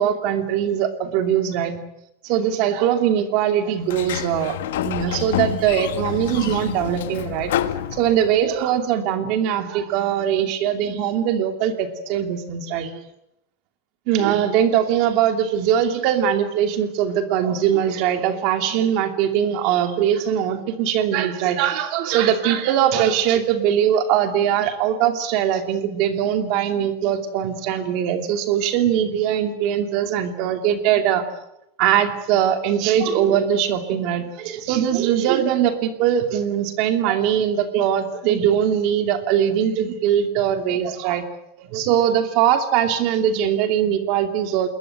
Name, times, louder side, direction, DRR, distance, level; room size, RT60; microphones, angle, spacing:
voice 1, 0.0-1.8 2.2-7.5 7.9-13.0 14.1-31.2 31.8-41.2 41.6-44.7, right 9 dB, 40° right, 7 dB, 2.7 m, -21 dB
Sliding door, 3.8-8.6, left 11 dB, 90° left, 1.7 m, -28 dB
27.5 x 21.5 x 8.0 m, 0.84 s
supercardioid pair, 180°, 0 cm